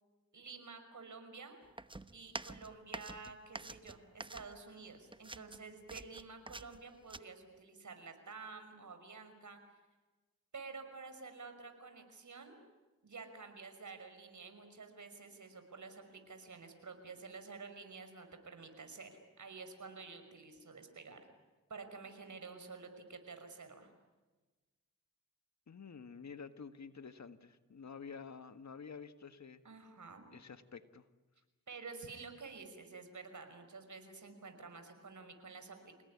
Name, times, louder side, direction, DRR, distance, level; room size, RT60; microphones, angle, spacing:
voice 1, 0.3-1.6 2.1-9.6 10.5-12.6 13.0-21.3 21.7-23.9 29.6-30.3 31.7-36.0, right 4 dB, 60° right, 7 dB, 5.7 m, -50 dB
sound 1, 1.8-4.8 5.1-7.2, right 2 dB, 15° right, 1.0 m, -47 dB
voice 2, 25.7-29.6 30.3-31.1, left 5 dB, 55° left, 11 dB, 1.7 m, -50 dB
28.5 x 18.5 x 9.9 m, 1.2 s
cardioid pair, 55°, 34 cm